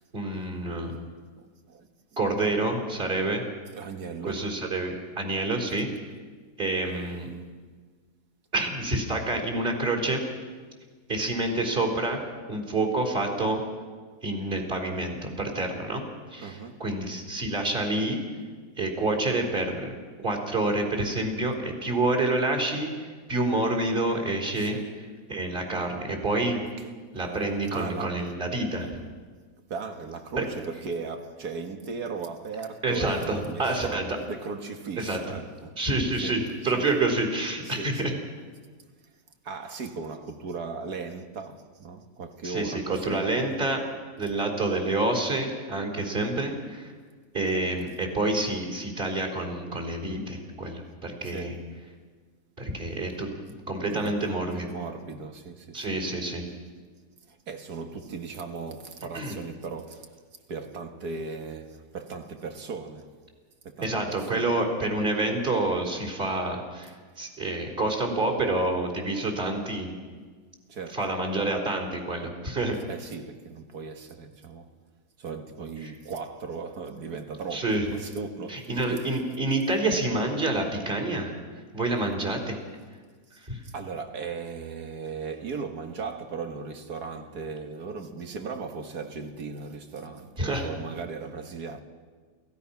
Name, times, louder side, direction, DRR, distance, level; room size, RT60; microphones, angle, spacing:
voice 1, 0.1-0.9 2.2-3.4 4.3-5.9 6.6-7.3 8.5-10.2 11.1-12.2 12.5-13.6 14.2-16.0 16.3-18.2 18.8-24.8 25.3-26.6 27.1-28.9 30.4-30.5 32.8-34.2 35.0-35.2 35.8-38.1 42.4-43.8 44.2-46.9 47.3-51.6 52.6-53.3 53.7-54.7 55.7-56.4 59.1-59.4 63.8-69.9 70.9-72.8 77.5-77.8 78.5-81.3 81.7-82.6 83.5-83.6 90.4-90.7, right 2 dB, 35° right, 4.1 m, -28 dB
voice 2, 1.3-1.9 3.7-4.6 16.4-16.8 24.6-25.0 26.8-27.4 27.7-28.3 29.7-35.8 36.2-36.9 37.6-38.2 39.4-43.5 46.0-46.4 51.2-51.7 53.8-56.0 57.3-60.2 60.5-63.1 63.6-64.5 70.7-71.0 72.9-74.7 75.2-79.0 83.6-91.8, right 4 dB, 70° right, 2.1 m, -37 dB
28.5 x 16.0 x 5.9 m
omnidirectional pair, 1.7 m